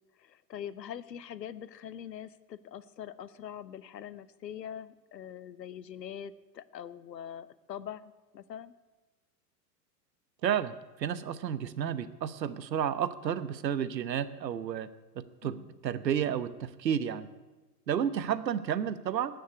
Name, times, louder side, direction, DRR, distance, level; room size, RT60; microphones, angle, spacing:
voice 1, 0.2-8.7 15.4-15.8, left 9 dB, 80° left, 16 dB, 0.9 m, -43 dB
voice 2, 10.4-14.9 15.4-17.3 17.9-19.3, right 9 dB, 80° right, 14 dB, 1.1 m, -31 dB
18.5 x 6.5 x 9.4 m, 1.2 s
hypercardioid pair, 100°, 49 cm